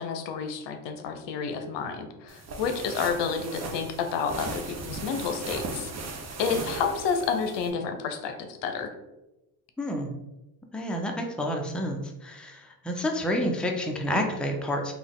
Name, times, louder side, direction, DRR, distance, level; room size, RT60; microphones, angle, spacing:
voice 1, 0.0-5.9 6.4-8.9, left 6 dB, 70° left, 6 dB, 0.7 m, -30 dB
sound 1, 2.3-7.7, right 3 dB, 35° right, 0.7 m, -37 dB
voice 2, 9.8-10.2 10.7-14.9, equal, ahead, 1 dB, 0.6 m, -29 dB
3.5 x 2.4 x 3.5 m, 0.96 s
supercardioid pair, 65°, 45 cm